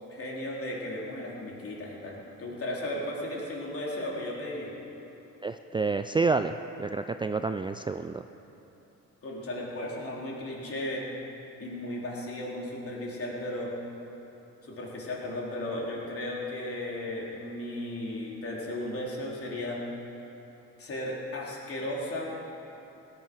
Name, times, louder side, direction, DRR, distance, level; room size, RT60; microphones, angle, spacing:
voice 1, 0.1-4.7 9.2-11.1 11.6-13.7 14.6-19.8 20.8-22.3, left 1 dB, 50° left, -4 dB, 3.8 m, -35 dB
voice 2, 5.4-8.2, right 4 dB, 15° right, 9 dB, 0.4 m, -29 dB
16.5 x 10.5 x 6.3 m, 3.0 s
cardioid pair, 90°, 30 cm